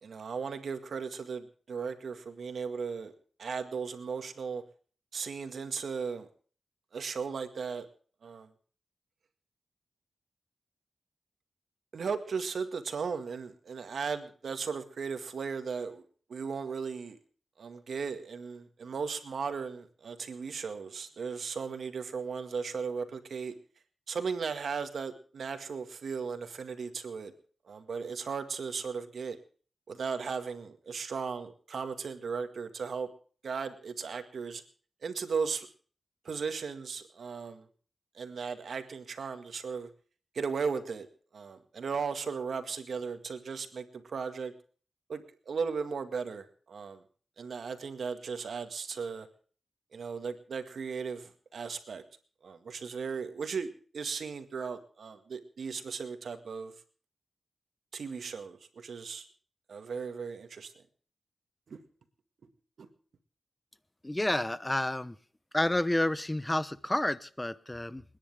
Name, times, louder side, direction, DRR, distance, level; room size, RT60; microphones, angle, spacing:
voice 1, 0.0-3.1 3.4-4.6 5.1-6.3 6.9-7.9 8.2-8.5 11.9-16.0 16.3-17.2 17.6-23.5 24.1-27.3 27.7-29.4 29.9-33.1 33.4-34.6 35.0-35.7 36.2-37.7 38.2-39.9 40.3-41.1 41.3-44.5 45.1-47.0 47.4-49.3 49.9-52.0 52.4-56.7 57.9-59.3 59.7-60.7 61.7-61.8 62.8-62.9, right 5 dB, 80° right, 8 dB, 1.9 m, -36 dB
voice 2, 64.0-65.2 65.5-68.0, left 1 dB, 15° left, 16 dB, 0.8 m, -30 dB
28.5 x 10.5 x 3.5 m, 0.42 s
cardioid pair, 65°, 0 cm